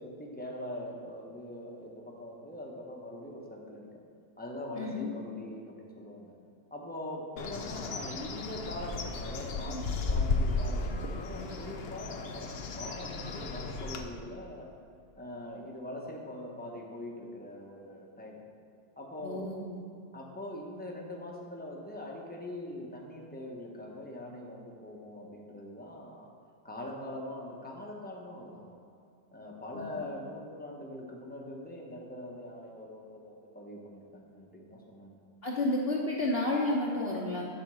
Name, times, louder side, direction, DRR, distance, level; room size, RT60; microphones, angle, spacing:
voice 1, 0.0-3.9 4.4-6.3 6.7-14.7 15.2-18.4 19.0-19.5 20.1-26.3 26.6-28.8 29.3-35.2, left 1 dB, 10° left, -1 dB, 0.5 m, -42 dB
voice 2, 4.7-5.1 19.2-19.8 29.7-30.0 35.4-37.5, left 2 dB, 45° left, -3 dB, 0.8 m, -31 dB
Bird, 7.4-14.0, left 3 dB, 75° left, 0.5 m, -34 dB
10.0 x 4.4 x 6.2 m, 2.4 s
omnidirectional pair, 1.9 m